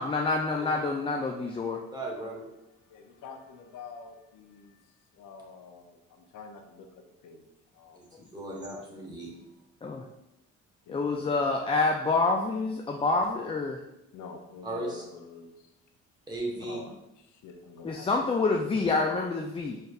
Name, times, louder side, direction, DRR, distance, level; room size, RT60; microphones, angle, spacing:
voice 1, 0.0-1.8 9.8-10.1 10.9-13.8 17.8-19.8, left 3 dB, 20° left, 1 dB, 0.3 m, -27 dB
voice 2, 1.9-2.4 7.9-9.3 14.6-15.0 16.3-16.8, right 2 dB, 15° right, -2 dB, 1.1 m, -36 dB
voice 3, 2.9-4.8 5.1-7.5 7.7-8.0 10.9-11.3 14.1-15.7 16.7-16.9 17.3-18.1, left 5 dB, 85° left, 5 dB, 0.6 m, -46 dB
4.4 x 3.2 x 2.4 m, 0.87 s
cardioid pair, 90°, 30 cm